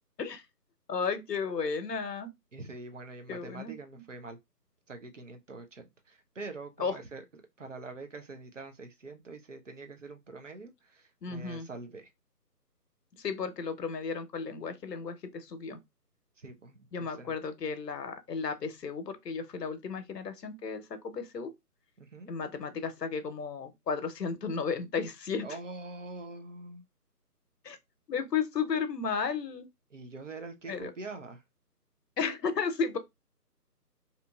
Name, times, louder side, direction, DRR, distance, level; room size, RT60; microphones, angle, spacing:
voice 1, 0.9-2.3 3.3-4.0 6.8-7.0 11.2-11.7 13.1-15.8 16.9-21.5 22.3-25.5 27.6-27.8 28.1-29.7 30.7-30.9 32.2-33.0, left 5 dB, 80° left, 0.7 m, -34 dB
voice 2, 2.5-4.4 4.9-7.2 7.6-12.1 16.4-17.4 22.0-22.3 25.4-26.8 29.9-31.4, right 3 dB, 50° right, 0.5 m, -44 dB
2.8 x 2.5 x 2.2 m
figure-of-eight pair, 160°, 48 cm